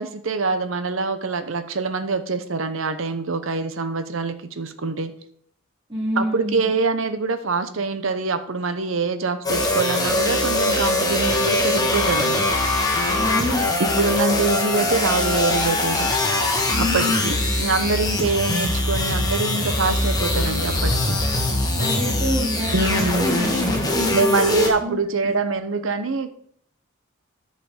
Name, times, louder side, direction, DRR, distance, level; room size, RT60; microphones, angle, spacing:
voice 1, 0.0-5.1 6.2-12.5 13.8-16.1 16.8-21.2 22.7-23.3 24.1-26.3, right 3 dB, 70° right, 11 dB, 0.9 m, -24 dB
voice 2, 5.9-6.8 13.1-13.7 16.7-17.4 18.1-18.2 21.8-24.5 24.8-25.3, equal, 25° right, -8 dB, 2.6 m, -27 dB
sound 1, 9.4-24.7, left 2 dB, 20° left, 1.7 m, -22 dB
10.5 x 5.8 x 5.0 m, 0.67 s
head